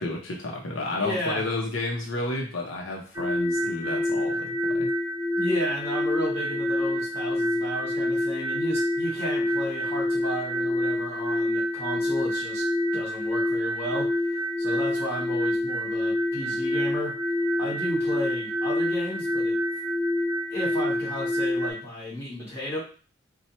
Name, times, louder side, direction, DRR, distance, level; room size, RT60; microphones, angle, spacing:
voice 1, 0.0-4.9, left 2 dB, 70° left, 0 dB, 0.7 m, -31 dB
voice 2, 1.0-1.5 5.4-12.6 12.9-17.1 17.6-19.6 20.5-22.8, equal, 15° left, -6 dB, 2.2 m, -33 dB
sound 1, 3.2-21.7, left 1 dB, 15° right, 0.7 m, -27 dB
4.2 x 2.3 x 4.3 m, 0.39 s
head